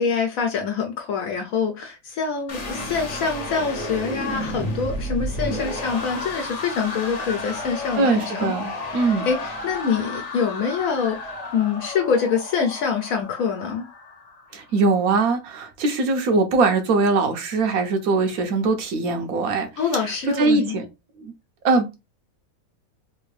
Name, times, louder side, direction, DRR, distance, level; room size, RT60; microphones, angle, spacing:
voice 1, 0.0-13.8 19.8-20.7, left 6 dB, 70° left, 1.0 m, -25 dB
sound 1, 2.5-14.5, left 1 dB, 40° left, 0.6 m, -32 dB
voice 2, 8.0-9.3 14.5-19.7 19.9-20.9 21.2-21.3 21.6-22.0, right 3 dB, 75° right, 1.2 m, -21 dB
3.3 x 2.6 x 3.2 m
omnidirectional pair, 1.5 m